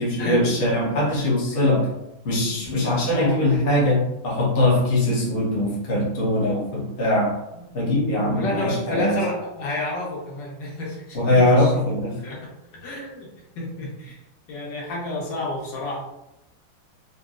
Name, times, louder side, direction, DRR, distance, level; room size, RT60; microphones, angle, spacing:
voice 1, 0.0-1.9 2.2-7.4 7.7-9.2 11.1-12.2, left 1 dB, 40° left, -5 dB, 0.8 m, -21 dB
voice 2, 2.5-3.4 8.1-11.9 12.2-12.4 12.7-13.3 13.5-14.2 14.5-16.0, left 2 dB, 70° left, -4 dB, 1.5 m, -30 dB
3.9 x 2.3 x 2.4 m, 0.88 s
omnidirectional pair, 2.1 m